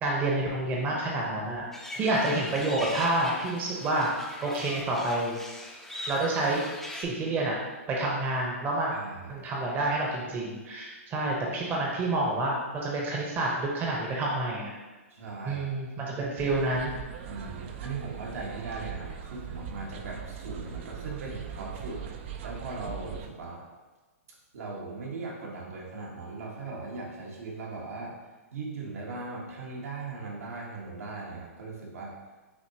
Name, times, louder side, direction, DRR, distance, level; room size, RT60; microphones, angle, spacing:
voice 1, 0.0-1.7 2.0-5.4 6.1-6.6 6.9-7.6 7.9-8.9 9.3-14.7 15.5-16.9, right 2 dB, 25° right, -2 dB, 0.8 m, -28 dB
sound 1, 1.7-7.0, left 1 dB, 5° left, 0.5 m, -40 dB
voice 2, 8.9-9.3 15.1-15.7 17.3-22.0 22.4-23.6 24.5-28.2 28.5-32.1, right 3 dB, 75° right, -3 dB, 1.4 m, -39 dB
sound 2, 16.4-23.3, right 8 dB, 50° right, 0.5 m, -40 dB
6.2 x 2.9 x 2.9 m, 1.2 s
hypercardioid pair, 130°, 8 cm